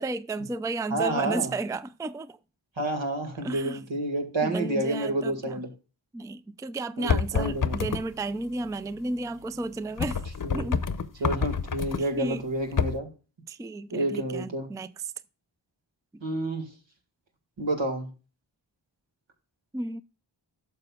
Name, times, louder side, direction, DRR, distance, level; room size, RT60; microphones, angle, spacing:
voice 1, 0.0-2.4 3.4-3.8 4.4-5.6 6.1-10.3 10.5-10.9 12.0-12.4 13.5-15.1 19.7-20.0, right 2 dB, 10° right, 0.4 m, -33 dB
voice 2, 0.9-1.5 2.8-5.7 7.0-7.8 10.4-10.8 11.2-13.1 13.9-14.7 16.2-16.7 17.6-18.1, right 1 dB, 75° right, 2.1 m, -29 dB
sound 1, 7.1-8.0 10.0-12.0 12.8-13.0, left 5 dB, 45° left, 0.7 m, -27 dB
11.5 x 6.8 x 2.4 m
cardioid pair, 40°, 45 cm